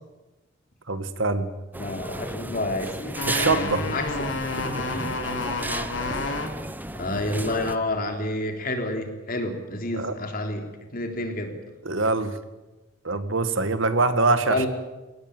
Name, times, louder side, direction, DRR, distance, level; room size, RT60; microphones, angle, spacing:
voice 1, 0.9-1.5 3.3-3.8 9.9-10.1 11.8-12.3 13.0-14.7, right 3 dB, 85° right, 11 dB, 1.8 m, -23 dB
sound 1, 1.7-7.8, right 1 dB, 10° right, 0.9 m, -34 dB
voice 2, 1.8-5.1 6.9-11.5 14.5-14.7, left 1 dB, 45° left, 4 dB, 3.6 m, -29 dB
sound 2, 3.2-6.5 7.2-8.1, left 3 dB, 70° left, 2.9 m, -30 dB
21.0 x 18.5 x 9.0 m, 1.1 s
head